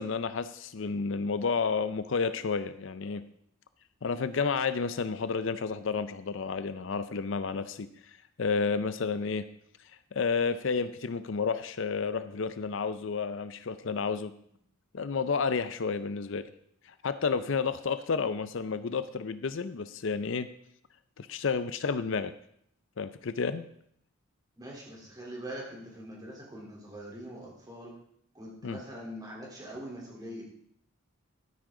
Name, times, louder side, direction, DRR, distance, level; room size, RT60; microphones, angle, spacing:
voice 1, 0.0-3.2 4.0-7.9 8.4-9.4 10.1-14.3 14.9-16.5 17.0-20.5 21.2-22.3 23.0-23.7 28.6-28.8, left 5 dB, 65° left, 12 dB, 0.5 m, -31 dB
voice 2, 24.6-27.9 28.3-30.4, equal, 20° right, -3 dB, 3.4 m, -43 dB
13.0 x 9.7 x 3.8 m, 0.69 s
head